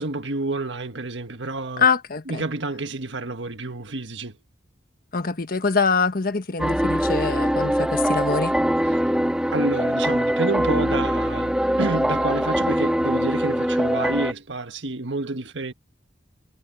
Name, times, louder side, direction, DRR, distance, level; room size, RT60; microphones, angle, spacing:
voice 1, 0.0-1.9 2.3-4.3 9.5-15.7, right 2 dB, 80° right, 1.6 m, -29 dB
voice 2, 1.8-2.4 5.1-8.6, left 4 dB, 55° left, 1.3 m, -24 dB
sound 1, 6.6-14.3, equal, 5° right, 2.1 m, -22 dB
head